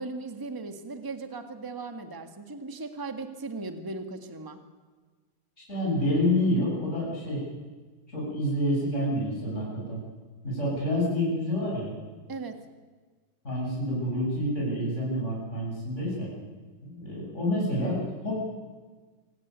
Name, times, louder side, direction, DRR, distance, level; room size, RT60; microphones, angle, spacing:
voice 1, 0.0-4.6 12.3-12.6, right 3 dB, 10° right, 7 dB, 1.6 m, -37 dB
voice 2, 5.7-7.4 8.1-10.0 10.4-11.9 13.4-16.3 16.8-18.3, left 1 dB, 35° left, -4 dB, 8.5 m, -28 dB
26.5 x 16.0 x 9.5 m, 1.4 s
omnidirectional pair, 2.3 m